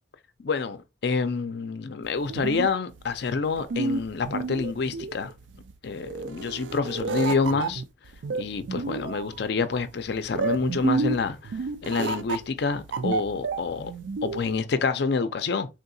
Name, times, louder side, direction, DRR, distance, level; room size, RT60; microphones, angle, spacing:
voice 1, 0.4-5.3 5.8-7.8 8.4-13.9 14.2-15.7, left 4 dB, 60° left, 0.4 m, -27 dB
sound 1, 2.0-14.6, right 4 dB, 70° right, 0.4 m, -31 dB
3.6 x 2.7 x 2.6 m
head